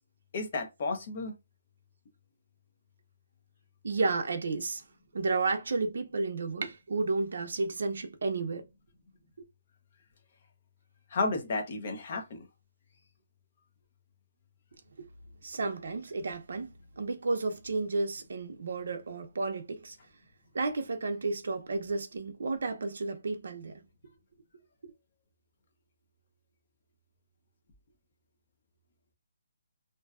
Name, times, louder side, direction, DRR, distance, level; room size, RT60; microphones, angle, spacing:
voice 1, 0.3-1.3 11.1-12.5, left 3 dB, 35° left, 0.6 m, -32 dB
voice 2, 3.8-4.8 5.1-8.7 15.0-15.1 15.4-20.0 20.5-23.8 24.8-24.9, right 3 dB, 60° right, 0.6 m, -32 dB
2.6 x 2.2 x 2.3 m
hypercardioid pair, 175°, 0 cm